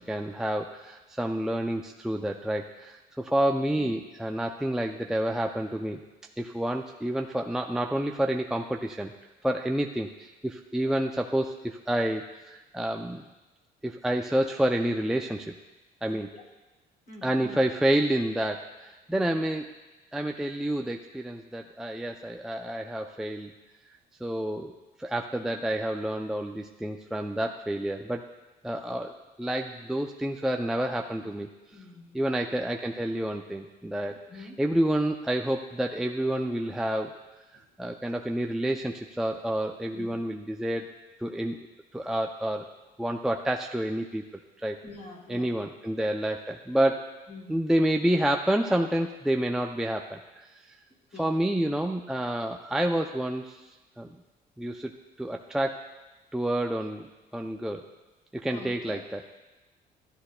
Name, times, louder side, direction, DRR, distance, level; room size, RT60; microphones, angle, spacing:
voice 1, 0.0-6.0 6.4-9.1 9.4-13.2 13.8-15.5 16.0-16.3 17.2-19.7 20.1-23.5 24.2-24.7 25.0-28.2 28.6-29.1 29.4-31.5 32.1-37.1 37.5-40.9 41.2-41.6 41.9-42.7 43.0-44.2 44.6-44.8 45.3-47.0 47.5-50.2 51.2-53.6 54.0-54.1 54.6-54.9 55.2-55.8 56.3-57.1 57.3-57.8 58.3-59.4, right 1 dB, 5° right, 3 dB, 0.4 m, -29 dB
voice 2, 16.0-16.4 17.1-17.6 19.1-19.4 31.2-31.3 31.7-32.2 34.1-34.6 39.9-40.1 44.8-45.5 47.3-47.5 51.1-51.3 58.5-59.0, left 3 dB, 45° left, -1 dB, 2.7 m, -46 dB
12.5 x 11.5 x 2.2 m, 1.1 s
cardioid pair, 110°, 17 cm